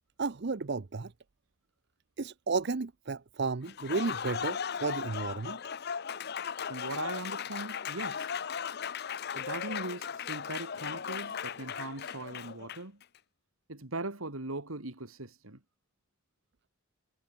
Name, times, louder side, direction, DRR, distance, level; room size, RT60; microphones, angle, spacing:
voice 1, 0.2-1.1 2.2-5.6, right 4 dB, 55° right, 0.7 m, -33 dB
Applause, 3.6-13.0, left 7 dB, 50° left, 0.6 m, -37 dB
voice 2, 6.7-8.3 9.3-13.0 13.7-15.6, right 2 dB, 80° right, 2.8 m, -40 dB
head